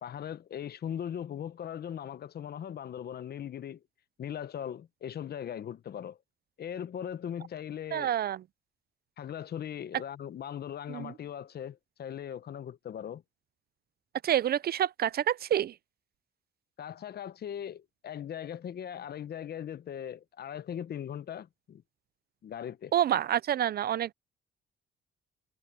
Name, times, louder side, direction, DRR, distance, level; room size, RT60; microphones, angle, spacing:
voice 1, 0.0-3.8 4.2-6.2 6.6-8.1 9.2-13.2 16.8-21.8 22.4-22.9, left 9 dB, 55° left, 0.8 m, -39 dB
voice 2, 7.9-8.4 10.9-11.1 14.2-15.7 22.9-24.1, right 10 dB, 50° right, 0.5 m, -28 dB
cardioid pair, 90°, 20 cm